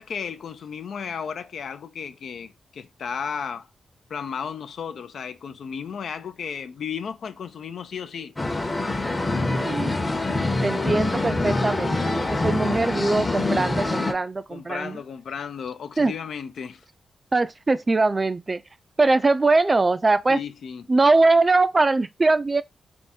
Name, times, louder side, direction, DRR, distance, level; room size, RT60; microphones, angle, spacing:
voice 1, 0.0-3.7 4.1-8.3 14.5-16.8 20.3-20.9, left 7 dB, 75° left, 0.5 m, -34 dB
sound 1, 8.4-14.1, left 2 dB, 25° left, 0.8 m, -25 dB
voice 2, 9.6-10.0 10.6-15.0 16.0-16.1 17.3-18.6 19.0-20.4 20.9-22.6, right 3 dB, 30° right, 0.4 m, -21 dB
3.5 x 2.6 x 4.1 m
cardioid pair, 80°, 0 cm